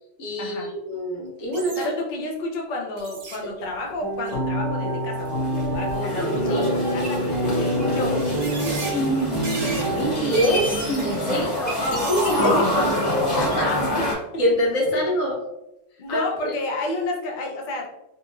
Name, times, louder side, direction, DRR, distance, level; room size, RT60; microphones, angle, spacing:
voice 1, 0.2-1.9 6.0-6.7 10.0-12.9 13.4-13.7 14.4-15.4 16.1-16.5, equal, 85° left, -2 dB, 1.2 m, -25 dB
voice 2, 1.5-7.2 7.6-9.1 11.3-11.5 12.3-12.7 13.6-14.1 16.0-17.9, left 2 dB, 55° left, 0 dB, 0.5 m, -31 dB
sound 1, 1.5-1.9 3.0-3.4 4.2-4.5 5.2-5.3 5.6-6.4 7.3-7.4 8.0-8.9 9.4-9.8 10.2-11.2 11.7-12.5 12.9-13.0, right 2 dB, 70° right, 0.9 m, -35 dB
sound 2, 4.0-10.2, right 1 dB, 20° right, 0.9 m, -27 dB
sound 3, 5.2-14.1, left 1 dB, 35° left, 1.3 m, -25 dB
2.8 x 2.5 x 2.4 m, 0.89 s
omnidirectional pair, 1.4 m